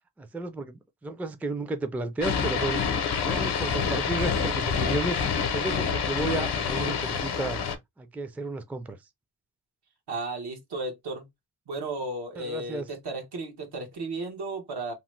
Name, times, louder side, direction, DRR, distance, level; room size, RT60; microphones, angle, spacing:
voice 1, 0.2-2.8 3.2-7.6 8.0-9.0 12.4-12.9, right 2 dB, 5° right, 0.3 m, -33 dB
sound 1, 2.2-7.8, left 6 dB, 85° left, 0.7 m, -27 dB
voice 2, 10.1-11.3 11.7-14.9, right 2 dB, 85° right, 1.1 m, -34 dB
2.9 x 2.0 x 3.1 m
wide cardioid pair, 100°, 38 cm